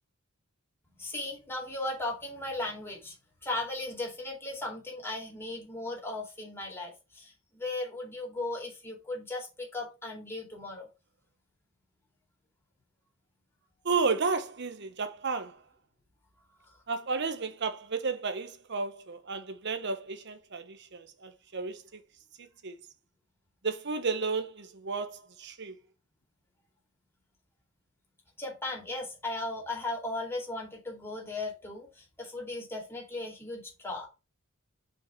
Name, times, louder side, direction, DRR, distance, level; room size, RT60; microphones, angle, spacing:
voice 1, 1.0-3.1 3.4-10.9 28.4-34.1, left 2 dB, 10° left, 2.7 m, -37 dB
voice 2, 13.8-15.6 16.9-22.0 22.6-22.7 23.6-25.7, right 4 dB, 55° right, 1.0 m, -32 dB
5.6 x 5.2 x 4.5 m
head